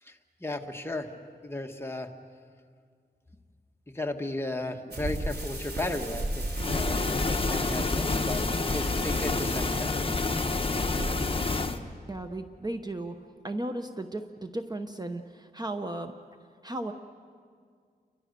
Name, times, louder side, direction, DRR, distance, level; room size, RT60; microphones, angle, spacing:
voice 1, 0.0-1.1 1.4-2.1 3.9-8.4 8.7-10.0, left 2 dB, 15° left, 3 dB, 1.6 m, -35 dB
sound 1, 4.9-11.6, right 1 dB, 85° right, 3.8 m, -36 dB
sound 2, 6.6-11.8, left 3 dB, 35° left, 1.1 m, -28 dB
voice 2, 12.1-13.2 13.4-16.1 16.6-16.9, right 1 dB, 25° right, 7 dB, 0.9 m, -35 dB
29.5 x 24.0 x 6.8 m, 2.1 s
wide cardioid pair, 105°, 16 cm